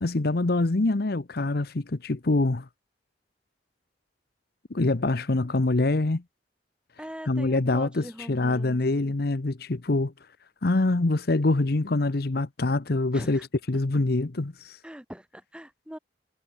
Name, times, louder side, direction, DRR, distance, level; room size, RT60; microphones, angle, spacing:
voice 1, 0.0-2.7 4.7-6.2 7.3-10.1 10.6-14.8, left 2 dB, 55° left, 0.9 m, -25 dB
voice 2, 7.0-8.8 9.1-9.2 13.1-13.5 14.8-16.0, equal, 5° right, 2.0 m, -42 dB
head